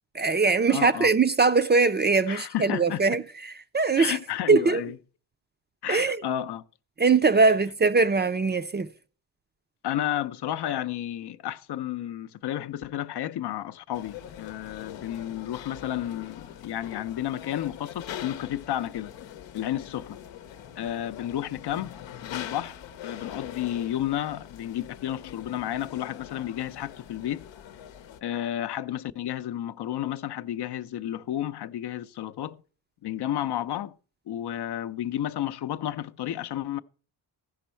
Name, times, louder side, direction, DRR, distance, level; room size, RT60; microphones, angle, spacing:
voice 1, 0.1-4.2 4.5-4.8 5.9-6.2 7.0-8.9, right 4 dB, 25° right, 0.4 m, -22 dB
voice 2, 0.7-1.1 2.3-3.0 4.0-5.0 5.8-6.6 9.8-19.1 19.5-20.2 20.8-27.4 28.2-32.6 33.0-33.9 34.3-36.8, left 12 dB, 65° left, 0.6 m, -32 dB
sound 1, 13.9-28.2, left 10 dB, 90° left, 0.8 m, -43 dB
15.0 x 5.3 x 4.4 m
cardioid pair, 85°, 44 cm